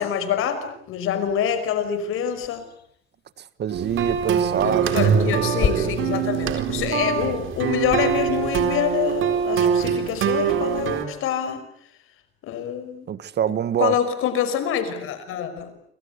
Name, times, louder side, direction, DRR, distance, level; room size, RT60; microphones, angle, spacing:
voice 1, 0.0-2.7 4.6-11.6 12.4-13.1 13.8-15.7, left 9 dB, 80° left, 5.4 m, -26 dB
sound 1, 1.3-1.4 1.9-2.0 2.4-2.8 3.6-3.8 4.1-4.3 4.9-8.7, left 7 dB, 50° left, 4.3 m, -32 dB
voice 2, 3.4-6.9 13.1-14.0, right 9 dB, 55° right, 1.5 m, -27 dB
sound 2, 3.7-11.0, right 7 dB, 70° right, 4.2 m, -23 dB
29.0 x 24.5 x 8.3 m
cardioid pair, 115°, 21 cm